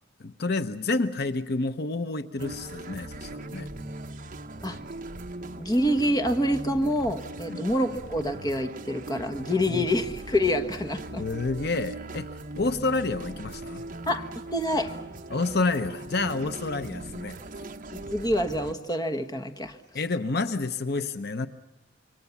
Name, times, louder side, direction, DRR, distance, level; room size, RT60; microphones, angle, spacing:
voice 1, 0.2-3.7 7.5-7.6 9.7-9.9 11.1-12.3 12.6-13.9 15.3-17.4 19.9-21.5, left 3 dB, 60° left, 11 dB, 0.8 m, -29 dB
sound 1, 2.4-18.7, right 2 dB, 45° right, 1.1 m, -39 dB
voice 2, 5.6-11.2 14.1-14.3 14.5-15.0 17.9-19.8, equal, 20° left, 6 dB, 1.4 m, -27 dB
27.0 x 23.5 x 7.2 m, 1.0 s
head